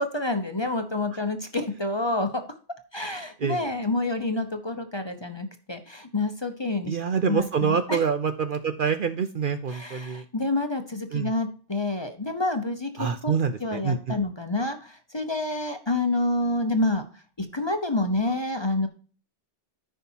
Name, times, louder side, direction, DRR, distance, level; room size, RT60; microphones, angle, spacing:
voice 1, 0.0-2.4 2.9-7.0 7.3-8.0 9.7-17.0 17.4-18.9, left 2 dB, 25° left, 6 dB, 0.8 m, -28 dB
voice 2, 6.9-10.2 11.1-11.3 13.0-14.2, right 6 dB, 55° right, 9 dB, 0.7 m, -26 dB
13.5 x 5.6 x 2.8 m, 0.40 s
omnidirectional pair, 1.2 m